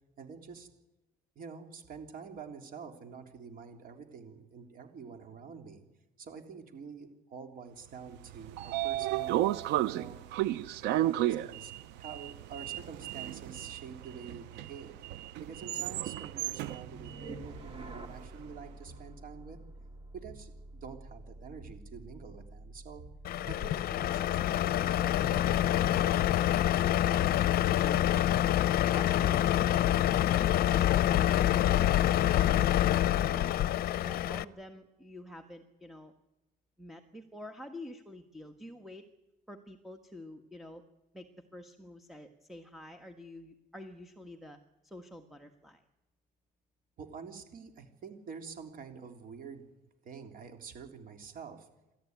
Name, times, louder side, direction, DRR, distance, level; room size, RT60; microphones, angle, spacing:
voice 1, 0.2-0.7 1.3-5.8 6.2-9.4 9.8-10.3 10.9-11.7 12.0-15.0 15.4-19.6 20.1-23.0 23.5-25.9 47.0-49.7 50.0-51.7, right 6 dB, 55° right, 5 dB, 3.4 m, -47 dB
Sliding door, 8.1-18.3, right 14 dB, 90° right, 0.7 m, -34 dB
sound 1, 16.8-27.9, right 2 dB, 35° right, 2.9 m, -49 dB
Truck, 23.2-34.4, left 13 dB, 65° left, 0.8 m, -26 dB
voice 2, 28.8-36.1 36.8-39.1 39.5-40.8 41.1-45.8, equal, ahead, 6 dB, 1.5 m, -48 dB
30.0 x 13.5 x 9.5 m, 1.0 s
cardioid pair, 110°, 17 cm